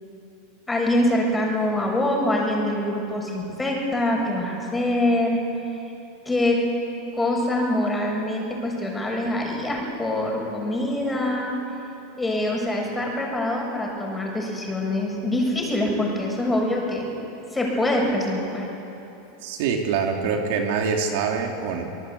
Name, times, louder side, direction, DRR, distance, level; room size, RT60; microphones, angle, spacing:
voice 1, 0.7-5.4 5.7-5.9 6.3-6.7 7.1-11.5 12.2-17.1 17.5-18.7, left 1 dB, 10° left, 0 dB, 7.1 m, -24 dB
voice 2, 19.4-21.9, right 5 dB, 70° right, 2 dB, 2.8 m, -25 dB
26.0 x 19.0 x 8.5 m, 3.0 s
hypercardioid pair, 110°, 0 cm